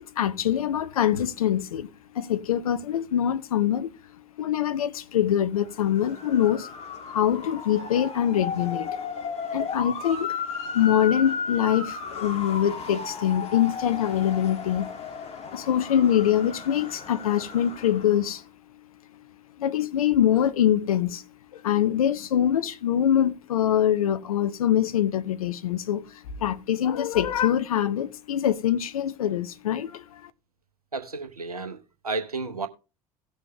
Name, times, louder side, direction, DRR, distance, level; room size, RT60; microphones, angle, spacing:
voice 1, 0.2-1.9 2.1-3.9 4.4-6.7 7.1-9.1 9.5-10.4 10.7-14.9 15.5-18.4 19.2-19.3 19.6-21.2 21.5-30.3, left 10 dB, 75° left, 0.8 m, -24 dB
Motor vehicle (road) / Siren, 5.7-18.4, left 5 dB, 35° left, 2.3 m, -35 dB
voice 2, 30.9-31.8 32.0-32.7, right 3 dB, 90° right, 0.9 m, -31 dB
17.5 x 6.5 x 3.1 m
figure-of-eight pair, 70°, 19 cm